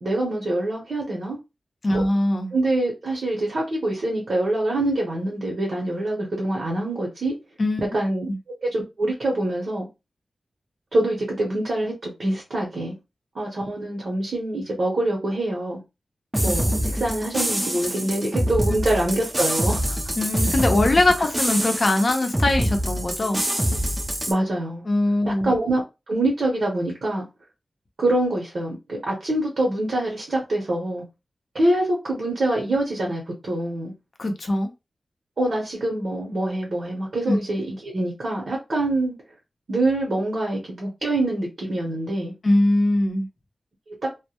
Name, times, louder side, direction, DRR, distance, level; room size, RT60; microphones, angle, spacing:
voice 1, 0.0-1.4 1.9-2.0 2.5-7.3 7.9-8.3 8.6-9.9 10.9-12.9 13.3-15.8 16.4-19.9 24.3-24.8 25.3-27.3 28.0-31.0 31.5-33.9 35.4-39.1 39.7-42.3 44.0-44.1, right 1 dB, 65° right, 0.7 m, -25 dB
voice 2, 1.8-2.5 7.6-7.9 8.3-8.4 20.2-23.4 24.9-25.5 34.2-34.7 37.3-37.4 42.4-43.3, left 1 dB, 50° left, 0.5 m, -21 dB
sound 1, 16.3-24.3, equal, 15° right, 0.4 m, -25 dB
2.1 x 2.0 x 2.8 m
wide cardioid pair, 90°, 0 cm